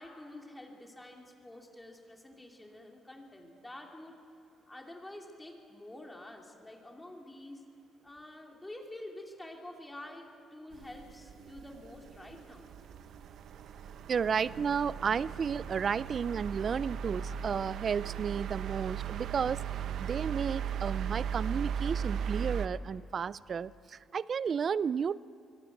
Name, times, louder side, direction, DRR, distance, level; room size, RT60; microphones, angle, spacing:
voice 1, 0.0-4.2 4.7-7.7 8.0-12.7, left 1 dB, 15° left, 1 dB, 2.7 m, -48 dB
sound 1, 10.7-22.7, right 8 dB, 70° right, 0.9 m, -37 dB
voice 2, 14.1-19.6 20.0-25.2, right 6 dB, 50° right, 19 dB, 0.5 m, -32 dB
23.5 x 16.5 x 9.1 m, 2.4 s
cardioid pair, 90°, 0 cm